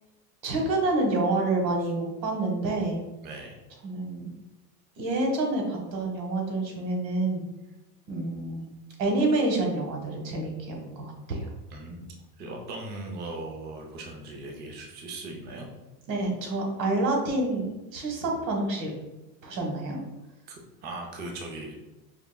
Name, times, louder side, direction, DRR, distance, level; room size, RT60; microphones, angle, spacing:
voice 1, 0.4-3.0 3.8-4.3 5.0-7.4 8.1-8.6 9.0-11.5 16.1-18.9 19.4-20.0, right 2 dB, 85° right, 1 dB, 1.5 m, -28 dB
voice 2, 3.2-3.6 11.7-15.7 20.5-21.8, right 2 dB, 20° right, 1 dB, 0.5 m, -39 dB
5.1 x 3.4 x 2.2 m, 1.0 s
supercardioid pair, 135°, 50 cm